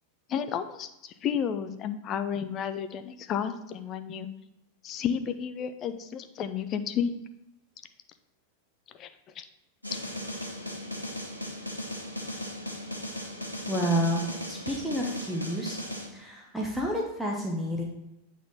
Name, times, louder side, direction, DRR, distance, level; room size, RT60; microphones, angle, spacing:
voice 1, 0.3-4.3 4.8-7.1 9.0-9.1 9.4-9.5, left 8 dB, 30° left, 9 dB, 0.5 m, -32 dB
sound 1, 9.8-16.1, left 1 dB, 90° left, 1.0 m, -37 dB
voice 2, 13.7-14.2 14.5-15.8 16.1-17.8, equal, ahead, -3 dB, 1.0 m, -29 dB
8.6 x 3.7 x 4.1 m, 0.90 s
figure-of-eight pair, 90°, 0 cm